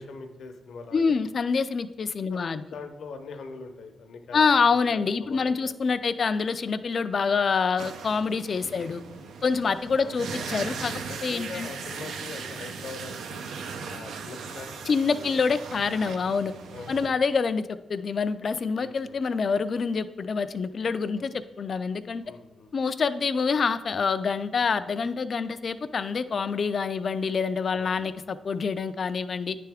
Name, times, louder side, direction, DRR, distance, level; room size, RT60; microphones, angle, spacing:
voice 1, 0.0-1.2 2.3-6.0 8.6-9.6 10.0-10.2 11.1-13.5 13.9-15.4 16.7-17.1 18.7-19.2 21.1-21.3 22.2-22.7 27.7-28.0, left 4 dB, 75° left, 6 dB, 0.7 m, -43 dB
voice 2, 0.9-2.6 4.3-9.0 9.4-10.9 11.2-11.7 14.9-16.5 16.9-22.2 22.7-29.6, left 5 dB, 50° left, 12 dB, 0.3 m, -26 dB
sound 1, 7.8-17.1, right 5 dB, 80° right, 0.5 m, -38 dB
9.7 x 3.4 x 3.4 m, 1.0 s
cardioid pair, 85°, 0 cm